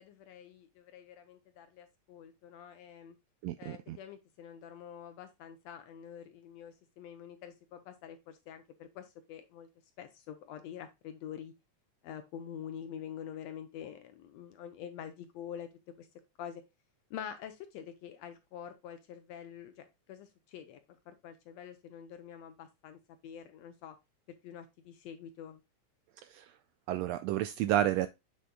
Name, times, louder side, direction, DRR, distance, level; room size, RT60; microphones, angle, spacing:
voice 1, 0.0-3.2 3.6-9.7 10.0-11.5 12.0-15.7 16.0-16.1 16.4-16.6 17.1-24.0 24.4-25.6, left 9 dB, 75° left, 1.7 m, -46 dB
voice 2, 3.4-4.0 26.3-26.4 26.9-28.1, right 12 dB, 80° right, 1.5 m, -30 dB
7.9 x 6.6 x 2.2 m
omnidirectional pair, 3.5 m